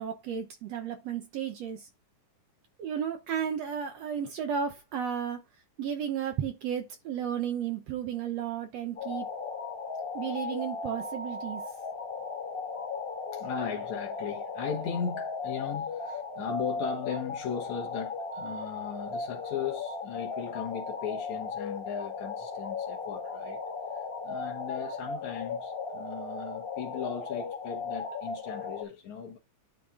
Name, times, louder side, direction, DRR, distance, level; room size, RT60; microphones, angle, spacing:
voice 1, 0.0-1.9 2.8-5.4 5.8-9.3 10.1-11.6, right 8 dB, 65° right, 1.9 m, -33 dB
sound 1, 9.0-28.8, left 4 dB, 50° left, 0.6 m, -36 dB
voice 2, 13.3-23.6 23.9-29.4, left 7 dB, 70° left, 2.5 m, -37 dB
10.5 x 4.2 x 3.7 m
omnidirectional pair, 3.5 m